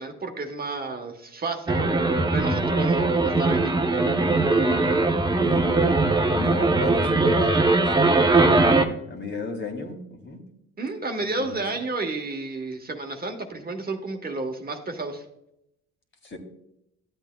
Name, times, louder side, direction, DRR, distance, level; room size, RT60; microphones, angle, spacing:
voice 1, 0.0-3.7 10.8-15.2, right 3 dB, 30° right, 4 dB, 1.2 m, -31 dB
sound 1, 1.7-8.8, right 3 dB, 15° right, 0.8 m, -21 dB
voice 2, 5.0-6.0 6.3-10.4 11.4-11.6 16.2-16.4, left 3 dB, 40° left, 3 dB, 2.0 m, -34 dB
13.0 x 8.1 x 2.2 m, 0.80 s
cardioid pair, 90°, 30 cm